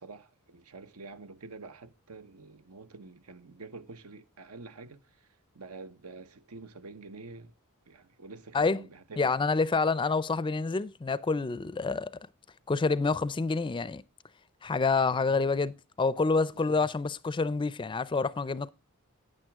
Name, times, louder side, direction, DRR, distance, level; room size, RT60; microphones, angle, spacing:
voice 1, 0.0-5.3 5.5-7.5 7.9-9.4 15.0-15.5 16.5-16.9, right 3 dB, 85° right, 0.9 m, -47 dB
voice 2, 9.2-12.1 12.7-14.0 14.6-18.7, left 4 dB, 20° left, 0.4 m, -27 dB
9.4 x 9.1 x 3.5 m
head